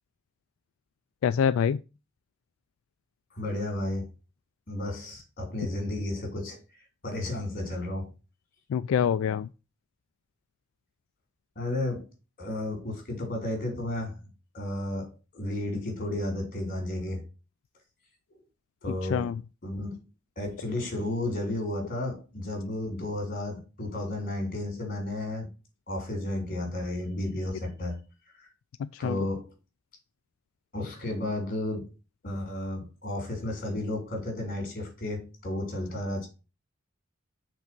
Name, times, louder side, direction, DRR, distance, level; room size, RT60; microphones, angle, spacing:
voice 1, 1.2-1.8 8.7-9.5 18.9-19.4 28.8-29.3, left 7 dB, 90° left, 0.3 m, -26 dB
voice 2, 3.3-4.1 4.7-6.6 7.0-8.1 11.5-12.1 12.4-14.1 14.5-17.2 18.8-19.3 19.6-20.0 20.3-25.5 25.9-28.0 28.4-28.5 29.0-29.5 30.7-31.9 32.2-36.3, left 1 dB, 45° left, 3.2 m, -32 dB
6.0 x 3.9 x 5.9 m
head